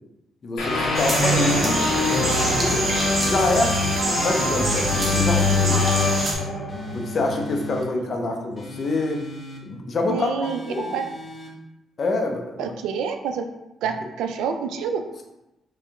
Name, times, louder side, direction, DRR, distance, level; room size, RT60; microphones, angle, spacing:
voice 1, 0.4-1.8 2.6-2.9 3.2-5.9 6.9-9.2 9.6-10.3 10.7-11.0 12.0-12.7, left 2 dB, 50° left, 3 dB, 0.7 m, -26 dB
sound 1, 0.6-7.5, left 2 dB, 80° left, 1.0 m, -23 dB
sound 2, 0.9-6.3, right 1 dB, 35° right, 1.0 m, -26 dB
sound 3, 3.0-4.0 4.7-5.9 6.7-7.9 8.6-9.6 10.4-11.5, left 2 dB, 30° left, 1.0 m, -36 dB
voice 2, 10.1-11.1 12.6-13.5 13.8-15.1, right 6 dB, 90° right, 7 dB, 0.3 m, -28 dB
3.5 x 3.2 x 2.9 m, 0.94 s
cardioid pair, 80°, 0 cm